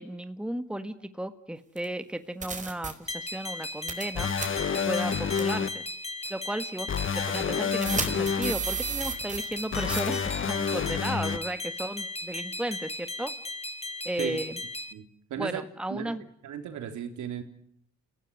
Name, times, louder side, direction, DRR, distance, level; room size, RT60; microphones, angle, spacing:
voice 1, 0.0-4.3 4.8-5.8 6.3-6.9 7.1-13.3 14.0-14.6 15.4-16.2, right 1 dB, 5° right, 10 dB, 1.6 m, -34 dB
sound 1, 1.8-1.9 2.4-2.9 3.9-4.1 4.4-4.5 5.4-5.5 6.3-6.4 7.8-9.6 9.9-10.1, right 5 dB, 25° right, 4.8 m, -32 dB
sound 2, 3.1-14.9, left 1 dB, 20° left, 2.0 m, -37 dB
sound 3, 4.2-5.7 6.9-8.5 9.7-11.4, left 6 dB, 40° left, 1.4 m, -29 dB
voice 2, 15.3-15.6 15.9-16.1 16.4-17.4, right 9 dB, 75° right, 6 dB, 3.8 m, -35 dB
29.5 x 16.5 x 9.6 m, 0.71 s
cardioid pair, 90°, 30 cm